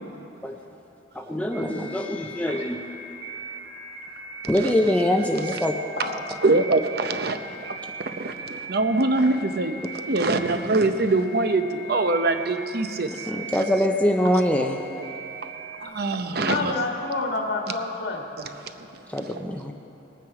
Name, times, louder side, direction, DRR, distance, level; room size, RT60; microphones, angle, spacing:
voice 1, 1.1-2.8 4.5-5.7 13.2-14.8 19.1-19.7, left 1 dB, 10° left, 2 dB, 0.5 m, -23 dB
sound 1, 1.5-15.9, right 2 dB, 75° right, 1.0 m, -39 dB
voice 2, 6.4-7.4 8.2-9.8 10.1-13.1 15.8-16.7, right 2 dB, 55° right, 8 dB, 0.7 m, -23 dB
voice 3, 16.5-18.2, left 3 dB, 70° left, 0 dB, 1.6 m, -28 dB
19.5 x 9.3 x 4.8 m, 2.9 s
head